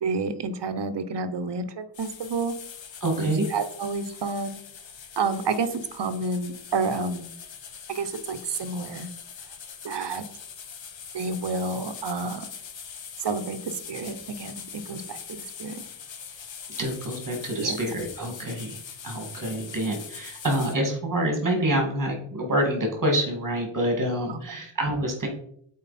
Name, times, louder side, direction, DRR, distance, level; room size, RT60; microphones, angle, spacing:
voice 1, 0.0-2.5 3.2-4.6 5.2-7.2 7.9-9.1 9.8-10.2 11.1-12.5 13.2-13.6 13.9-15.8 17.6-17.8 24.3-24.4, right 4 dB, 55° right, 10 dB, 0.9 m, -30 dB
sound 1, 1.9-20.8, left 7 dB, 65° left, 0.9 m, -42 dB
voice 2, 3.0-3.5 16.8-25.3, right 1 dB, 40° right, 2 dB, 2.3 m, -27 dB
7.7 x 4.6 x 4.2 m, 0.67 s
wide cardioid pair, 125°, 49 cm